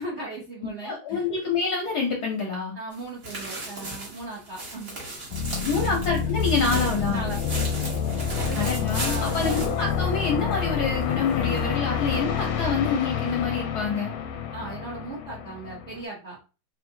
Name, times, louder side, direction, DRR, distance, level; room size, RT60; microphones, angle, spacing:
voice 1, 0.0-1.3 2.7-5.0 5.7-5.9 7.1-7.3 7.7-7.8 8.3-8.7 9.0-9.7 14.5-16.4, right 2 dB, 75° right, -4 dB, 0.6 m, -37 dB
voice 2, 0.8-2.7 5.7-7.2 8.5-14.1, left 4 dB, 70° left, 0 dB, 0.9 m, -27 dB
sound 1, 2.9-10.6 10.9-11.0 11.5-11.6, right 2 dB, 45° right, 1.6 m, -36 dB
sound 2, 5.3-16.0, left 7 dB, 90° left, 1.5 m, -28 dB
3.6 x 2.6 x 2.6 m, 0.33 s
omnidirectional pair, 2.4 m